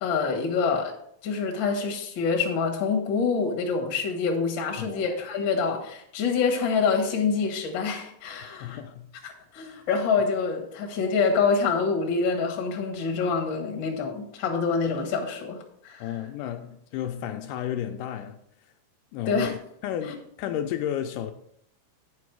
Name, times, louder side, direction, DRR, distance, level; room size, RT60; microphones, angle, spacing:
voice 1, 0.0-0.9 1.2-8.8 9.2-15.6 15.8-16.1 19.2-19.5, left 5 dB, 50° left, 1.5 m, -26 dB
voice 2, 8.6-9.1 16.0-18.4 19.1-19.5 19.8-21.3, left 10 dB, 80° left, 2.1 m, -32 dB
8.5 x 5.4 x 4.6 m
omnidirectional pair, 3.9 m